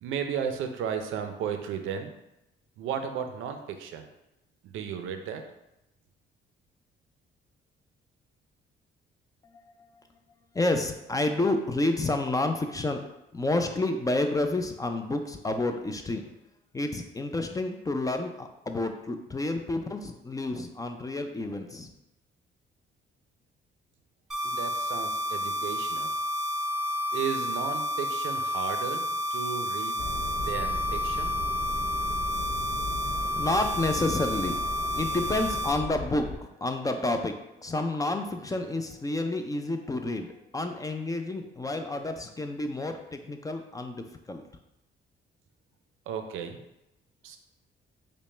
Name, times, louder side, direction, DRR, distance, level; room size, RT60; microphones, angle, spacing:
voice 1, 0.0-2.1 2.8-4.0 4.6-5.4 24.4-26.1 27.1-30.0 30.4-31.4 46.1-46.6 47.2-47.4, right 7 dB, 85° right, 6 dB, 0.5 m, -34 dB
voice 2, 10.5-13.0 13.3-16.3 16.7-21.9 33.2-37.4 37.6-40.3 40.5-44.4, left 2 dB, 15° left, 6 dB, 0.4 m, -30 dB
sound 1, 24.3-35.7, left 1 dB, ahead, 1.0 m, -30 dB
sound 2, 30.0-36.4, left 2 dB, 65° left, 0.9 m, -37 dB
5.2 x 2.1 x 3.2 m, 0.89 s
cardioid pair, 90°, 20 cm